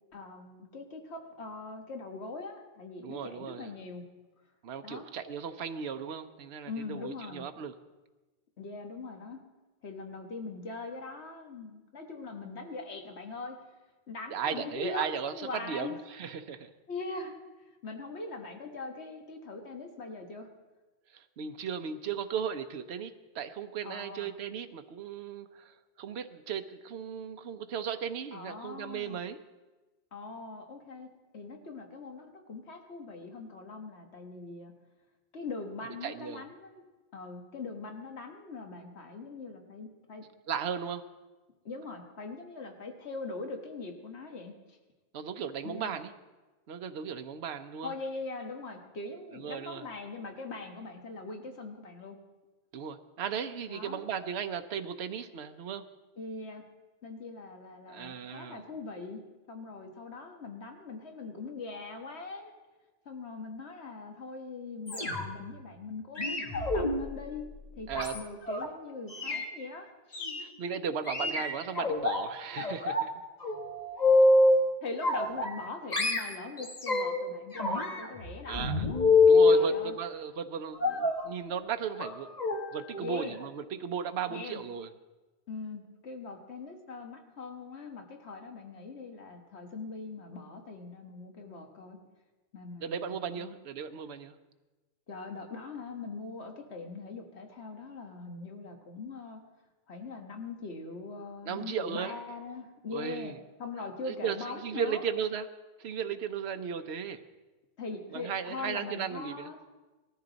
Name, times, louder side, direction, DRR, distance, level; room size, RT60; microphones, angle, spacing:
voice 1, 0.1-4.0 4.8-5.1 6.7-7.5 8.6-9.4 9.8-13.6 14.1-16.0 16.9-17.4 17.8-20.5 23.8-24.3 28.3-29.2 30.1-34.7 35.3-36.8 37.1-40.2 41.7-44.8 45.6-46.0 47.8-52.2 53.7-54.0 56.2-56.6 57.0-59.2 59.5-62.5 63.1-67.5 67.8-70.3 74.8-78.7 79.5-79.9 82.9-83.4 84.3-84.6 85.5-92.0 92.5-93.5 95.1-99.4 99.9-103.3 103.6-105.0 107.8-109.6, left 3 dB, 85° left, 4 dB, 1.6 m, -41 dB
voice 2, 3.0-3.7 4.6-7.7 14.3-15.3 15.7-16.7 21.1-29.4 36.0-36.4 40.5-41.0 45.1-46.1 46.7-47.9 49.4-49.8 52.7-55.8 57.9-58.6 67.9-68.2 70.4-73.1 78.5-78.9 79.3-82.3 82.7-84.9 92.8-94.4 101.4-102.1 102.9-103.4 104.1-105.5 105.8-107.2 108.1-109.5, right 7 dB, 80° right, 7 dB, 1.0 m, -36 dB
sound 1, 64.9-65.5 66.2-68.6 69.1-69.4 70.1-70.4 71.1-72.2 72.6-73.1 73.4-74.6 75.0-75.7 75.9-77.2 77.5-79.6 80.8-81.2 81.9-82.1 82.4-82.6 82.9-83.1 83.4-83.5, left 3 dB, 40° left, 1.6 m, -26 dB
19.5 x 13.5 x 4.0 m, 1.2 s
omnidirectional pair, 1.1 m